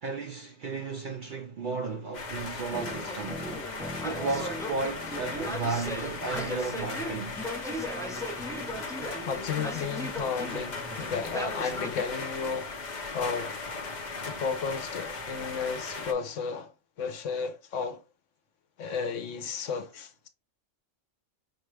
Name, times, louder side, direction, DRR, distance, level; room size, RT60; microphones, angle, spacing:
voice 1, 0.0-3.5 4.0-7.4 12.5-12.6, right 4 dB, 60° right, 0.5 m, -34 dB
sound 1, 2.1-16.1, left 3 dB, 40° left, 0.8 m, -38 dB
sound 2, 2.7-12.0, equal, 5° left, 0.5 m, -37 dB
voice 2, 9.2-12.9 13.1-13.6 14.2-18.0 18.8-20.3, left 5 dB, 75° left, 1.0 m, -33 dB
5.8 x 2.4 x 3.2 m
omnidirectional pair, 1.3 m